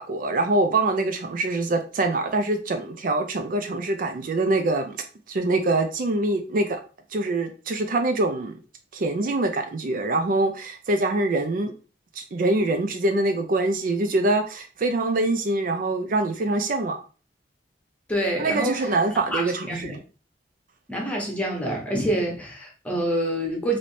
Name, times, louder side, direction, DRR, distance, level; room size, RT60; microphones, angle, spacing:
voice 1, 0.0-5.0 5.3-6.8 7.1-8.5 8.9-11.7 12.2-17.0 18.4-20.0, right 2 dB, 50° right, 0.4 m, -24 dB
voice 2, 18.1-20.0 20.9-23.8, right 1 dB, 10° left, 0.8 m, -27 dB
3.1 x 2.6 x 3.2 m
head